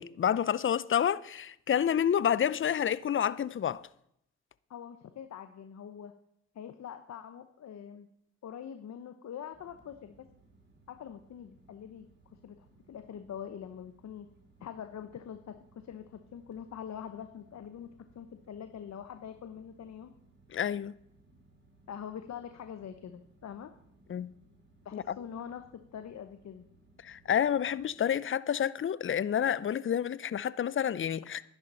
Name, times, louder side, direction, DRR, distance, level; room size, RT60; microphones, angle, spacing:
voice 1, 0.0-3.9 20.5-20.9 24.1-24.3 24.9-25.1 27.0-31.4, left 9 dB, 45° left, 0.6 m, -29 dB
voice 2, 4.7-6.1 6.5-8.1 8.4-10.2 10.9-12.1 12.4-14.3 14.6-15.5 15.8-17.9 18.1-20.1 21.9-23.7 24.8-25.6 25.9-26.6, left 8 dB, 65° left, 0.9 m, -44 dB
sound 1, 9.5-28.0, right 2 dB, 40° right, 3.5 m, -63 dB
11.5 x 10.5 x 5.6 m
cardioid pair, 60°, 29 cm